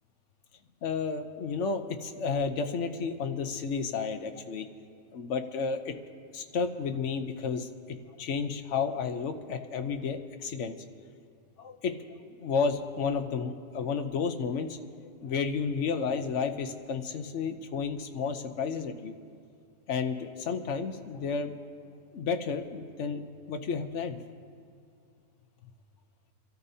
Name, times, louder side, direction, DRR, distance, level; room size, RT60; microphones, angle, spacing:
voice 1, 0.8-4.7 5.1-5.9 6.3-10.8 11.6-11.9 12.4-14.8 15.2-19.1 19.9-21.5 22.1-23.2 23.5-24.2, left 5 dB, 60° left, 7 dB, 1.0 m, -32 dB
27.0 x 13.0 x 2.7 m, 2.3 s
omnidirectional pair, 1.6 m